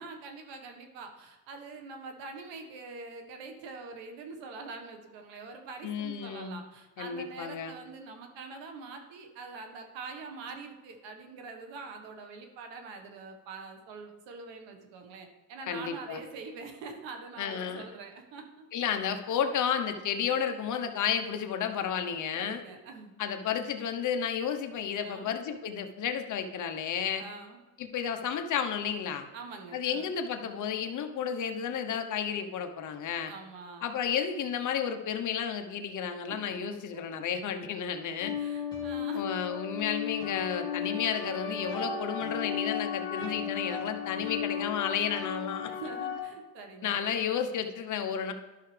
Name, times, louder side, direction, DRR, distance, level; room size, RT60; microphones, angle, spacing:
voice 1, 0.0-18.7 22.3-23.1 25.0-25.4 27.2-27.6 29.3-30.1 33.1-33.8 36.3-36.4 38.4-39.4 45.7-47.1, right 4 dB, 75° right, 4 dB, 1.5 m, -44 dB
voice 2, 5.8-6.6 7.0-7.7 15.7-16.2 17.4-17.8 18.7-22.6 23.2-27.2 27.8-29.2 29.7-33.3 33.8-38.3 39.1-45.7 46.8-48.3, left 8 dB, 45° left, 6 dB, 0.9 m, -32 dB
sound 1, 38.2-46.2, left 7 dB, 10° left, 2.3 m, -35 dB
12.0 x 5.7 x 3.3 m, 1.2 s
cardioid pair, 130°, 44 cm